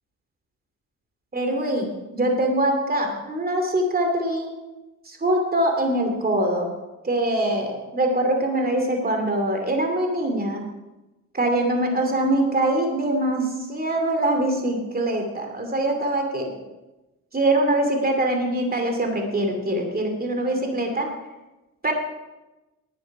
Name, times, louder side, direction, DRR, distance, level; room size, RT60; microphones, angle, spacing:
voice 1, 1.3-4.5 5.1-6.7 7.0-10.6 11.3-16.5 17.3-21.1 21.8-21.9, right 1 dB, 25° right, 4 dB, 2.5 m, -23 dB
11.5 x 9.4 x 5.5 m, 1.0 s
cardioid pair, 80°, 34 cm